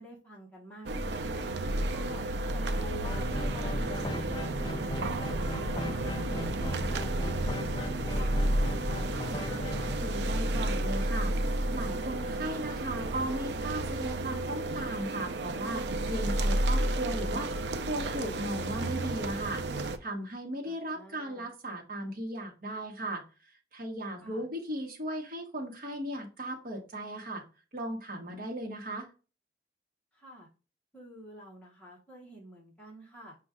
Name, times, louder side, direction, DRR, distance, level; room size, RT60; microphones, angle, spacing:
voice 1, 0.0-1.5 1.9-7.7 8.1-9.0 20.6-21.5 24.2-24.4 30.1-30.5 30.9-33.4, right 1 dB, 5° left, -4 dB, 0.9 m, -49 dB
sound 1, 0.9-20.0, right 1 dB, 75° right, 0.4 m, -32 dB
sound 2, 3.0-10.0, left 1 dB, 25° left, 0.4 m, -36 dB
voice 2, 10.0-11.3 11.7-23.2 23.7-27.4 27.7-29.1, right 1 dB, 50° right, -1 dB, 0.9 m, -37 dB
5.2 x 2.2 x 3.5 m, 0.33 s
head